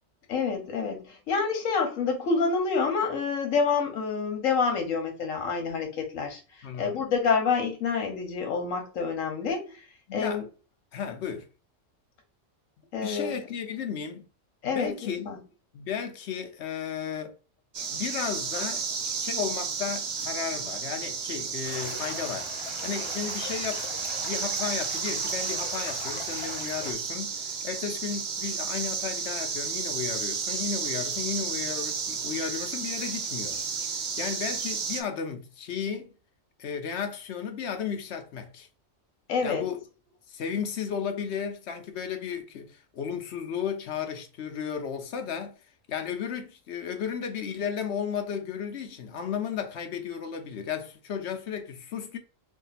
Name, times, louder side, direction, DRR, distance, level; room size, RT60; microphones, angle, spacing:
voice 1, 0.3-9.8 10.1-10.4 12.9-13.4 14.6-14.9 15.2-15.4 39.3-39.6, left 5 dB, 80° left, 1.4 m, -28 dB
voice 2, 6.6-7.0 10.1-10.4 10.9-11.5 13.0-14.2 14.6-15.3 15.7-17.4 17.9-18.9 19.2-33.6 33.9-36.2 36.6-38.7 39.4-39.8 40.3-45.6 45.9-52.2, left 7 dB, 65° left, 0.9 m, -34 dB
sound 1, 17.7-35.0, right 5 dB, 50° right, 0.5 m, -32 dB
sound 2, 21.6-26.9, left 3 dB, 40° left, 0.4 m, -41 dB
3.6 x 2.3 x 4.0 m
omnidirectional pair, 1.3 m